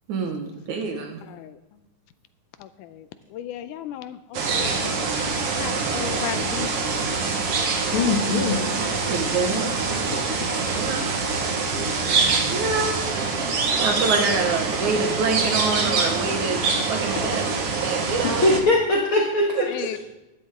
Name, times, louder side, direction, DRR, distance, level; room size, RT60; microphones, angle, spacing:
voice 1, 0.1-1.1 9.1-9.7 10.7-11.1 12.5-13.0 13.8-17.5 17.8-18.5, right 4 dB, 70° right, 3 dB, 2.7 m, -26 dB
voice 2, 2.6-5.3 5.6-6.9 11.8-12.0 14.1-14.4 17.2-17.3 19.7-20.0, left 11 dB, 80° left, 11 dB, 2.1 m, -35 dB
sound 1, 4.3-18.6, right 4 dB, 55° right, 2.1 m, -25 dB
voice 3, 7.9-8.7 18.4-19.7, left 2 dB, 50° left, -1 dB, 2.0 m, -21 dB
voice 4, 9.4-10.4 11.4-12.8, right 1 dB, 40° right, -5 dB, 5.8 m, -38 dB
16.0 x 12.0 x 3.7 m, 0.98 s
omnidirectional pair, 3.7 m